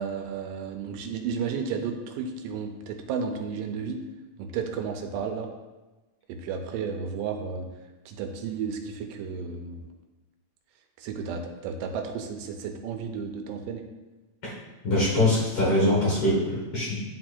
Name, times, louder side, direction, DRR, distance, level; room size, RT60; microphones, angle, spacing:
voice 1, 0.0-4.0 4.4-5.5 6.3-7.7 8.1-9.9 11.0-13.8, right 6 dB, 85° right, 4 dB, 2.2 m, -33 dB
voice 2, 14.8-17.0, left 1 dB, 55° left, -6 dB, 1.7 m, -23 dB
11.0 x 4.4 x 2.5 m, 1.1 s
omnidirectional pair, 3.9 m